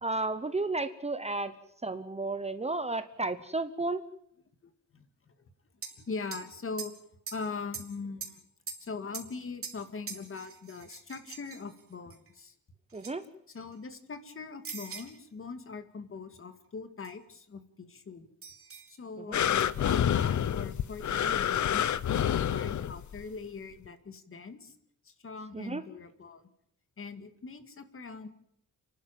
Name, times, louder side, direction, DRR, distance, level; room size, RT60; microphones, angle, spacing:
voice 1, 0.0-1.5 1.8-4.0 12.9-13.2 19.3-19.4 25.5-25.8, right 2 dB, 20° right, 11 dB, 0.9 m, -32 dB
voice 2, 4.6-5.5 6.0-7.0 7.3-8.4 8.8-12.6 13.5-18.3 19.0-21.8 22.1-24.8 25.0-26.4 27.0-28.3, left 4 dB, 40° left, 9 dB, 2.2 m, -41 dB
sound 1, 5.8-6.0 6.3-6.5 6.8-7.4 7.7-8.4 8.7-9.8 10.1-12.3 12.9-13.1 13.5-14.1 14.6-15.2 17.0-17.1 18.4-19.0 19.6-20.0, right 5 dB, 40° right, 3.1 m, -43 dB
sound 2, 19.3-23.2 23.9-24.0, left 10 dB, 60° left, 0.8 m, -28 dB
30.0 x 12.0 x 9.1 m, 0.73 s
wide cardioid pair, 160°, 33 cm